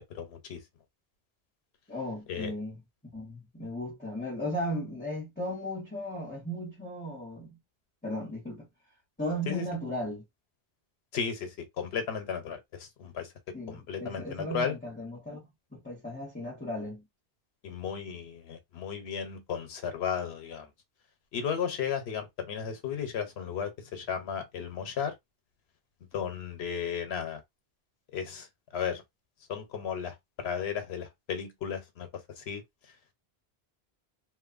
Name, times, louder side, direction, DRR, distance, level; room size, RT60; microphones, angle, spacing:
voice 1, 0.1-0.6 2.3-2.5 9.5-9.7 11.1-14.8 17.6-20.7 21.3-25.1 26.1-27.4 28.1-28.5 28.7-29.0 29.5-32.1 32.4-32.6, left 7 dB, 90° left, 1.0 m, -34 dB
voice 2, 1.9-2.8 3.1-7.6 8.0-8.7 9.2-10.2 13.5-15.5 15.7-17.0, equal, 10° left, 0.9 m, -36 dB
2.9 x 2.2 x 2.4 m
omnidirectional pair, 1.0 m